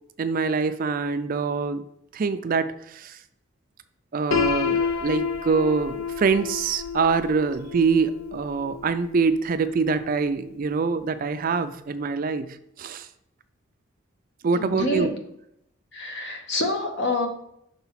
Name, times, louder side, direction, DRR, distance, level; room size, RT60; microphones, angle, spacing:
voice 1, 0.2-1.8 2.1-3.2 4.1-13.1 14.4-15.1, right 5 dB, 40° right, 10 dB, 0.4 m, -25 dB
Piano, 4.3-10.2, left 6 dB, 80° left, 0.5 m, -30 dB
voice 2, 14.5-15.1 15.9-17.3, left 2 dB, 55° left, 4 dB, 1.0 m, -27 dB
5.8 x 3.9 x 5.7 m, 0.76 s
head